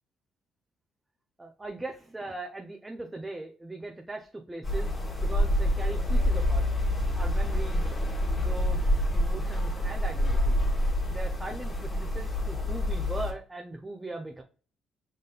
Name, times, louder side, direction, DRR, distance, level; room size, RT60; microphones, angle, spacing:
voice 1, 1.4-4.9 5.2-6.6 7.1-7.9 8.4-8.8 9.1-14.4, right 2 dB, 20° right, 2 dB, 0.7 m, -39 dB
sound 1, 4.6-13.3, left 1 dB, 30° left, 1.7 m, -27 dB
5.1 x 3.7 x 2.3 m, 0.40 s
supercardioid pair, 70°, 0 cm